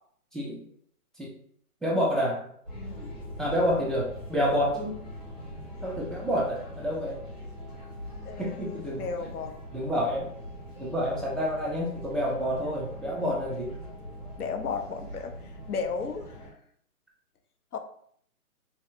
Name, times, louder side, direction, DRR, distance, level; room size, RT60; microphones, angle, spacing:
voice 1, 1.8-2.5 3.4-5.1 5.8-7.2 8.4-9.3 9.7-10.3 10.8-13.7, equal, ahead, -4 dB, 0.4 m, -28 dB
sound 1, 2.6-16.5, equal, 30° left, 1.4 m, -42 dB
voice 2, 2.7-3.1 8.2-9.5 14.4-15.3 15.7-16.4 17.7-17.8, left 5 dB, 75° left, 6 dB, 0.7 m, -34 dB
3.3 x 2.7 x 2.4 m, 0.64 s
hypercardioid pair, 180°, 45 cm